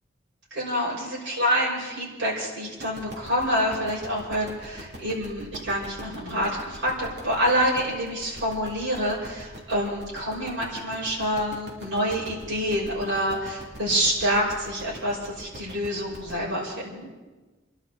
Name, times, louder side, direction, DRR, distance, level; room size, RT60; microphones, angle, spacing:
voice 1, 0.5-17.1, equal, 85° right, -5 dB, 5.8 m, -27 dB
sound 1, 2.8-16.4, equal, 55° right, 3.3 m, -42 dB
29.0 x 11.5 x 4.1 m, 1.2 s
head